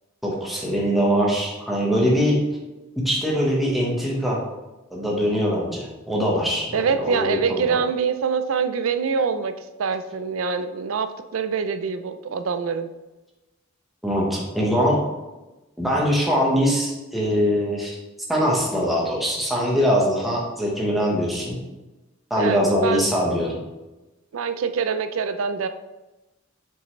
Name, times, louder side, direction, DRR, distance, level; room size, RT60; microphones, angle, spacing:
voice 1, 0.2-2.4 3.0-4.4 4.9-7.8 14.0-15.0 15.8-18.0 18.3-21.6 22.3-23.6, equal, ahead, -4 dB, 1.2 m, -22 dB
voice 2, 6.7-12.9 22.4-23.1 24.3-25.7, right 6 dB, 85° right, 10 dB, 0.5 m, -25 dB
6.6 x 5.5 x 3.2 m, 1.1 s
head